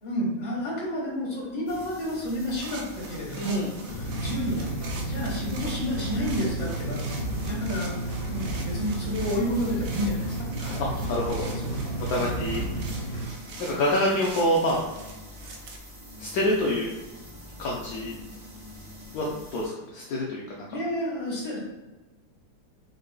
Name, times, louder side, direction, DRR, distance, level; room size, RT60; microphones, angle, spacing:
voice 1, 0.0-4.7 5.0-7.9 8.3-10.9 11.5-12.3 20.7-21.6, left 1 dB, 25° left, -6 dB, 1.1 m, -31 dB
sound 1, 1.7-19.7, left 1 dB, 40° right, 1.6 m, -45 dB
sound 2, 2.5-15.8, right 3 dB, 75° right, 1.2 m, -44 dB
voice 2, 3.3-3.7 11.1-11.5 12.0-12.6 13.6-14.8 16.2-16.9 17.6-18.2 19.1-20.8, left 1 dB, 75° left, -3 dB, 0.8 m, -26 dB
sound 3, 3.9-13.2, right 1 dB, 50° left, 1.6 m, -32 dB
3.9 x 3.8 x 2.2 m, 1.1 s
omnidirectional pair, 2.0 m